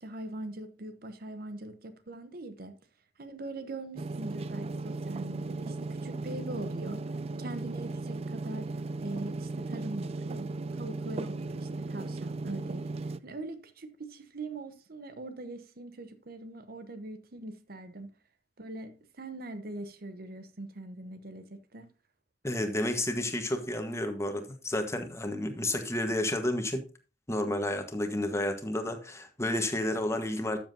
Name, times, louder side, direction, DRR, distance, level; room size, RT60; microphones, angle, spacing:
voice 1, 0.0-2.7 3.2-7.1 7.4-8.7 9.0-12.8 13.2-18.1 18.6-21.9, right 2 dB, 60° right, 0.9 m, -42 dB
sound 1, 4.0-13.2, right 3 dB, 35° right, 0.4 m, -36 dB
voice 2, 22.4-26.9 27.3-30.6, left 1 dB, 15° left, 1.3 m, -31 dB
13.0 x 7.3 x 2.7 m
head